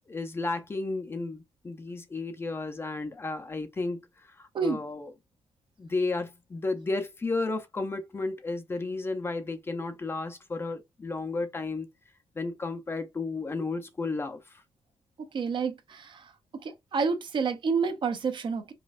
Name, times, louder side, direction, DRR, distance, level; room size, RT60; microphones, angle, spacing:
voice 1, 0.1-5.1 5.8-11.9 12.4-14.6, left 3 dB, 20° left, 0.5 m, -33 dB
voice 2, 15.3-16.3 16.6-18.7, right 5 dB, 50° right, 0.7 m, -29 dB
5.1 x 2.2 x 2.4 m
wide cardioid pair, 150°, 11 cm